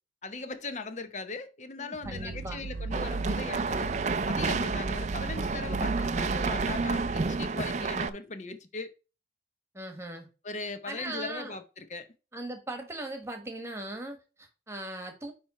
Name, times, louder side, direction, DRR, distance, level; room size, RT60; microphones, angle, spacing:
voice 1, 0.2-3.9 4.3-8.9 10.4-12.1, left 3 dB, 40° left, 0.7 m, -39 dB
voice 2, 1.8-2.7 9.7-10.3 10.9-11.6 12.3-15.3, right 1 dB, 15° right, 1.3 m, -39 dB
sound 1, 2.0-7.4, right 3 dB, 85° right, 0.6 m, -37 dB
sound 2, 2.9-8.1, right 4 dB, 40° right, 0.4 m, -30 dB
9.5 x 3.3 x 4.2 m
head